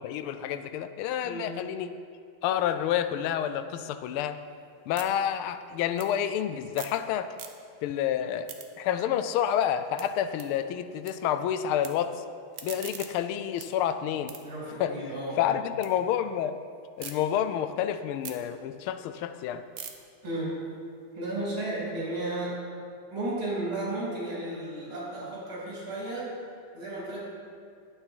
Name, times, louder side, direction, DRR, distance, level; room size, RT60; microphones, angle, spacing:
voice 1, 0.0-1.9 2.4-4.4 4.9-7.3 7.8-8.5 8.8-12.2 12.6-14.3 14.8-14.9 15.4-16.6 17.0-19.6, left 10 dB, 85° left, 10 dB, 1.5 m, -29 dB
sound 1, 4.1-7.0 7.3-7.9 8.2-11.1 11.4-11.9 12.3-15.9 16.3-17.1 17.6-21.7, right 8 dB, 60° right, 1.0 m, -47 dB
voice 2, 14.4-15.6 20.2-20.5 21.1-22.6 23.1-26.3 26.7-27.3, right 1 dB, 80° right, -6 dB, 4.1 m, -33 dB
11.5 x 8.9 x 4.4 m, 2.3 s
omnidirectional pair, 2.3 m